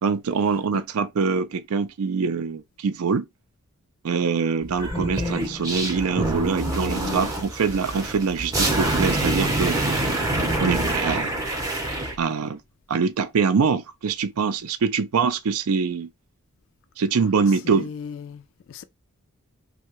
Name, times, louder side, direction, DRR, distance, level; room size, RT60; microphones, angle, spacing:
voice 1, 0.0-3.3 4.0-9.8 10.6-11.4 12.2-12.6 12.9-16.1 17.0-17.9, right 5 dB, 70° right, 0.4 m, -24 dB
sound 1, 4.7-12.2, right 1 dB, 15° right, 0.6 m, -25 dB
voice 2, 7.0-7.3 17.6-18.8, left 6 dB, 60° left, 0.3 m, -36 dB
2.7 x 2.2 x 2.9 m
head